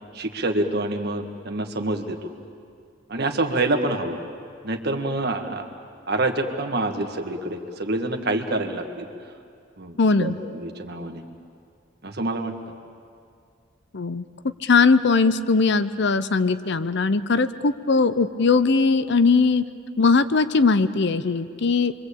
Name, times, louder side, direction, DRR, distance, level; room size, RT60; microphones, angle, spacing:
voice 1, 0.1-2.3 3.1-4.2 4.6-5.7 6.1-9.1 9.8-11.2 12.0-12.5, right 2 dB, 55° right, 5 dB, 1.9 m, -26 dB
voice 2, 10.0-10.4 13.9-14.2 14.6-19.6 20.0-21.9, left 4 dB, 60° left, 13 dB, 0.7 m, -20 dB
27.5 x 24.0 x 8.5 m, 2.3 s
head